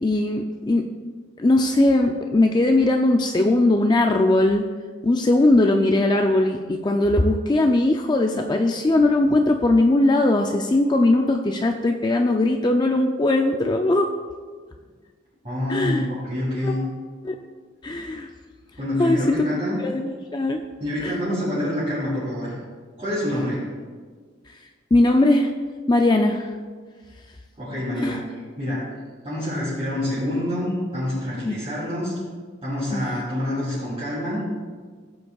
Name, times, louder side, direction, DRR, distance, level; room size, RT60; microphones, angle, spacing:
voice 1, 0.0-0.9 1.4-4.6 5.0-14.1 15.7-16.1 16.6-16.8 17.2-17.4 17.8-18.3 19.0-19.4 19.8-20.6 21.0-21.2 24.9-25.5 25.9-26.5 28.0-28.2 31.4-31.6 32.9-33.0, left 2 dB, 20° left, 3 dB, 0.4 m, -20 dB
voice 2, 15.4-16.8 18.8-19.8 20.8-22.5 23.0-23.6 27.6-28.2 28.6-28.9 29.2-32.1 32.6-34.4, left 1 dB, 30° right, -10 dB, 3.0 m, -26 dB
15.5 x 7.8 x 2.4 m, 1.6 s
head